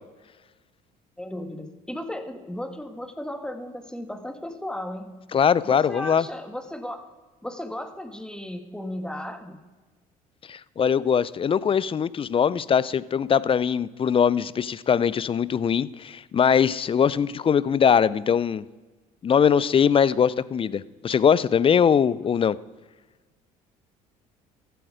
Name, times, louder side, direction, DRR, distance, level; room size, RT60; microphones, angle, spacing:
voice 1, 1.2-5.2 5.6-7.0 7.4-9.6, left 1 dB, 5° left, 8 dB, 1.4 m, -35 dB
voice 2, 5.3-6.3 10.5-18.6 19.2-22.6, left 7 dB, 30° left, 20 dB, 0.4 m, -21 dB
14.0 x 7.9 x 5.0 m, 1.3 s
supercardioid pair, 75°, 18 cm